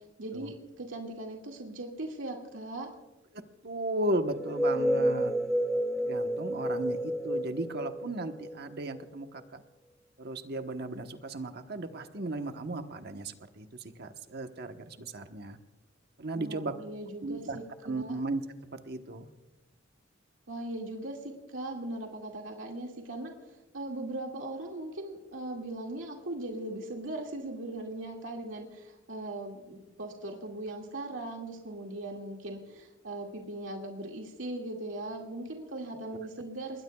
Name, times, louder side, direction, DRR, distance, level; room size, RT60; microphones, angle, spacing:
voice 1, 0.2-2.9 16.3-18.1 20.5-23.3 23.7-36.8, right 2 dB, 80° right, 0 dB, 2.2 m, -39 dB
voice 2, 3.3-5.3 6.0-9.6 10.2-15.6 16.2-16.8 17.2-18.4 18.7-19.3, right 2 dB, 55° right, 7 dB, 1.1 m, -36 dB
sound 1, 4.4-9.0, equal, 5° left, 0.4 m, -30 dB
28.0 x 21.5 x 2.3 m, 1.0 s
head